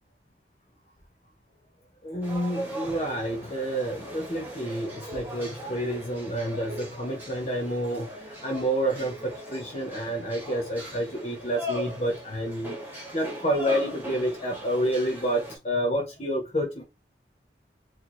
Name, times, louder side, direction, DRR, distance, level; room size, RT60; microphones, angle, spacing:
voice 1, 2.0-16.8, right 1 dB, 35° left, 1.0 m, -29 dB
sound 1, 2.2-15.6, equal, 10° right, 1.2 m, -39 dB
4.4 x 2.4 x 3.1 m
head